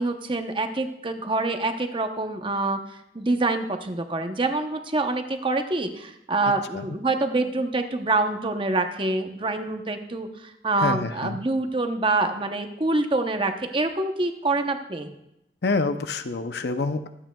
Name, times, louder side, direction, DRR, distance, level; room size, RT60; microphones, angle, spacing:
voice 1, 0.0-15.1, right 2 dB, 25° right, 6 dB, 0.8 m, -26 dB
voice 2, 10.8-11.4 15.6-17.1, left 3 dB, 60° left, 9 dB, 0.6 m, -27 dB
24.0 x 8.8 x 2.3 m, 0.84 s
head